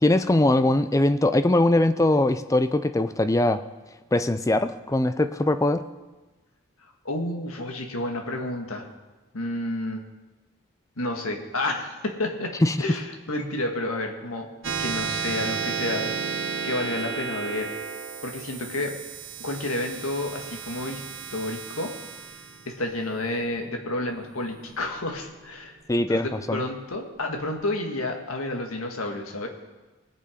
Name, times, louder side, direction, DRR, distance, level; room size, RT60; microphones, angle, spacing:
voice 1, 0.0-3.6 4.1-5.8 12.6-12.8 25.9-26.6, left 1 dB, 15° left, 11 dB, 0.4 m, -21 dB
voice 2, 7.1-8.8 9.3-10.0 11.0-12.5 12.8-16.2 16.6-17.7 18.2-18.9 19.4-21.0 21.3-21.9 22.7-25.8 26.1-29.5, left 1 dB, 85° left, 3 dB, 1.7 m, -30 dB
sound 1, 14.6-25.5, right 5 dB, 55° right, 0.9 m, -33 dB
19.0 x 6.8 x 5.1 m, 1.2 s
head